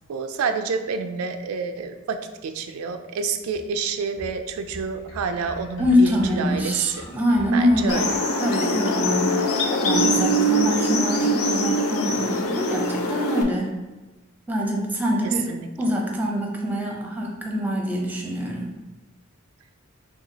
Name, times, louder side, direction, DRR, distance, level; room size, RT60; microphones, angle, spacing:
voice 1, 0.1-7.1 7.5-8.1 15.2-15.7, right 5 dB, 90° right, 7 dB, 0.4 m, -28 dB
sound 1, 3.5-8.2, equal, 65° left, 1.3 m, -41 dB
voice 2, 5.8-8.0 8.4-13.8 14.5-15.5 15.8-18.7, left 1 dB, 10° right, -1 dB, 0.6 m, -24 dB
sound 2, 7.9-13.4, equal, 90° left, 0.5 m, -23 dB
5.7 x 2.3 x 2.8 m, 1.1 s
head